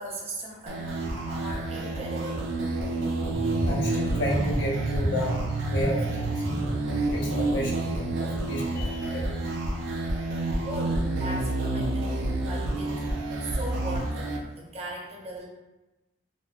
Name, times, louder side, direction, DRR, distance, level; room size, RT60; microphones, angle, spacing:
voice 1, 0.0-2.5 10.7-12.1 12.4-12.9 13.4-15.5, right 1 dB, 35° right, -2 dB, 0.6 m, -38 dB
sound 1, 0.7-14.4, right 2 dB, 90° right, 0.4 m, -29 dB
sound 2, 3.3-9.3, right 2 dB, 10° left, 0.7 m, -32 dB
voice 2, 3.6-5.4 5.7-6.4 7.1-7.7 8.2-9.5, equal, 70° left, -2 dB, 0.6 m, -32 dB
3.0 x 2.2 x 2.3 m, 1.0 s
head